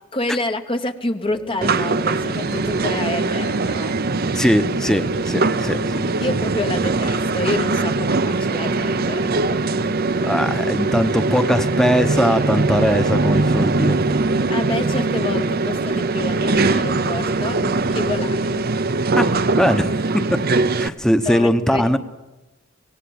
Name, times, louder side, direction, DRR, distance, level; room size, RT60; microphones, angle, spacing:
voice 1, 0.1-4.0 6.2-9.6 14.5-17.6 17.9-18.5 21.2-21.9, left 2 dB, 25° left, 7 dB, 0.9 m, -28 dB
sound 1, 1.2-18.7, left 3 dB, 90° left, 4.4 m, -38 dB
sound 2, 1.6-20.9, right 3 dB, 50° right, 0.7 m, -21 dB
voice 2, 4.3-6.0 10.2-14.0 19.2-20.4 20.8-22.0, equal, 5° left, 8 dB, 1.0 m, -20 dB
25.0 x 18.0 x 8.7 m, 1.1 s
head